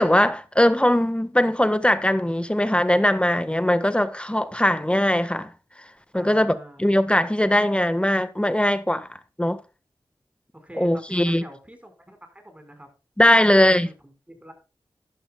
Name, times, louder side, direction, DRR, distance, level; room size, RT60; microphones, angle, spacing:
voice 1, 0.0-5.5 6.1-9.1 9.4-9.6 10.8-11.4 13.2-13.9, left 1 dB, 10° left, 1.5 m, -20 dB
voice 2, 6.1-6.9 10.5-12.9 13.4-14.5, equal, 15° right, 5.0 m, -45 dB
14.0 x 11.0 x 2.3 m
cardioid pair, 50°, 9 cm